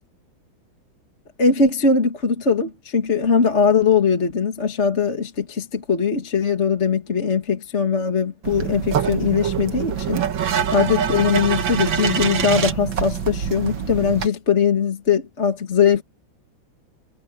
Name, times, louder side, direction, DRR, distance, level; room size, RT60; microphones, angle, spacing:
voice 1, 1.4-16.0, left 6 dB, 35° left, 2.2 m, -20 dB
sound 1, 8.4-14.3, right 8 dB, 65° right, 2.2 m, -24 dB
omnidirectional pair, 2.3 m